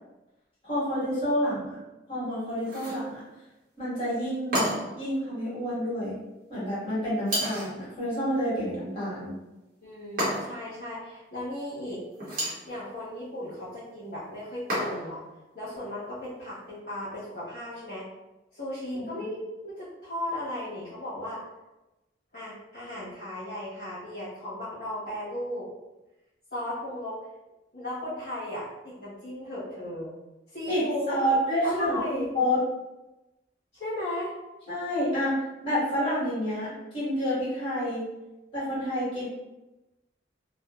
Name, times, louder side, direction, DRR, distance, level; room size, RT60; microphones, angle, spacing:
voice 1, 0.6-1.8 2.1-3.2 3.8-6.2 6.5-9.4 18.9-19.0 30.7-30.8 31.1-32.0 32.3-32.6 34.7-38.1 38.5-39.3, equal, 30° left, -11 dB, 1.3 m, -29 dB
Cereal bowl pick up put down on countertop table, 2.6-3.1 4.5-5.0 7.3-7.8 10.2-10.7 12.1-12.7 14.7-15.2, equal, 50° right, 0.9 m, -30 dB
voice 2, 9.8-12.0 12.6-15.3 15.5-18.1 18.5-21.4 22.3-25.7 26.5-27.2 27.7-30.2 30.5-32.3 33.7-34.3, left 1 dB, 65° left, -11 dB, 1.0 m, -36 dB
2.6 x 2.2 x 2.3 m, 1.0 s
head